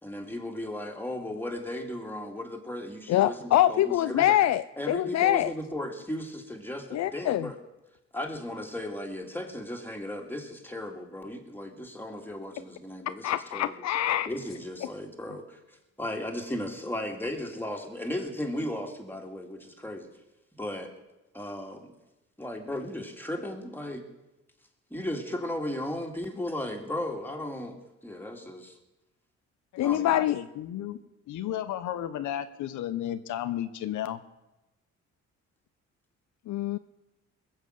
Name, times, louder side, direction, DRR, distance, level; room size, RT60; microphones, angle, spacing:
voice 1, 0.0-4.3 4.8-7.6 8.1-13.9 14.3-20.1 20.6-20.9 21.3-21.9 22.4-24.0 24.9-28.8 29.8-30.2, left 1 dB, 5° left, 2 dB, 2.5 m, -36 dB
voice 2, 3.1-5.5 6.9-7.5 13.2-14.3 29.8-30.4 36.5-36.8, left 13 dB, 65° left, 12 dB, 0.5 m, -24 dB
voice 3, 29.7-31.0 31.3-34.2, left 11 dB, 80° left, 10 dB, 0.9 m, -33 dB
21.0 x 7.4 x 6.5 m, 0.99 s
cardioid pair, 90°, 30 cm